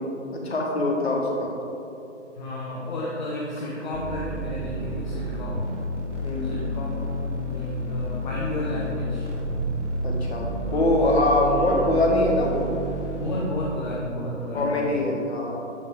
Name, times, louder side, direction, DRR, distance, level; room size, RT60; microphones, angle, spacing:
voice 1, 0.0-1.5 6.2-6.6 10.0-12.7 14.5-15.6, left 1 dB, 55° left, -1 dB, 1.6 m, -23 dB
voice 2, 2.3-5.7 6.5-9.3 10.5-10.8 11.4-11.8 13.2-15.1, left 1 dB, 40° left, -5 dB, 1.0 m, -32 dB
sound 1, 3.9-13.5, right 1 dB, 70° right, 1.7 m, -30 dB
8.7 x 5.3 x 3.8 m, 2.8 s
figure-of-eight pair, 135°, 37 cm